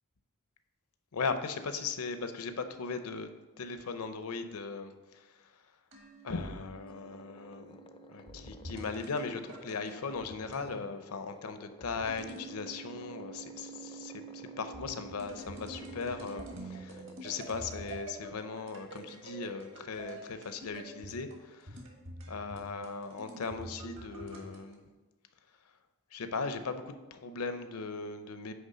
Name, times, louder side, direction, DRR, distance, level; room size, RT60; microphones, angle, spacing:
voice 1, 1.1-3.3 3.6-5.3 6.2-7.8 8.1-21.8 22.3-24.8 26.1-28.5, left 4 dB, 75° left, 9 dB, 0.6 m, -38 dB
sound 1, 5.9-10.8 11.8-24.7, right 2 dB, 60° right, 1.6 m, -47 dB
sound 2, 6.9-19.5, left 3 dB, 25° left, 0.3 m, -55 dB
9.5 x 3.3 x 5.5 m, 1.2 s
head